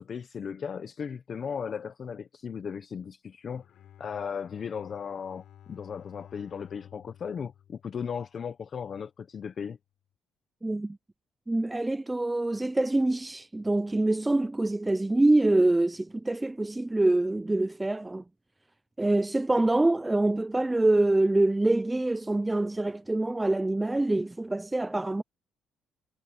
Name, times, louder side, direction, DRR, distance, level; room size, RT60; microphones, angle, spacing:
voice 1, 0.0-3.6 4.0-9.8, left 7 dB, 35° left, 0.9 m, -36 dB
Bowed string instrument, 3.4-8.7, left 10 dB, 55° left, 6.6 m, -54 dB
voice 2, 10.6-11.0 11.5-18.2 19.0-25.2, right 2 dB, 10° right, 0.4 m, -25 dB
cardioid pair, 150°, 0 cm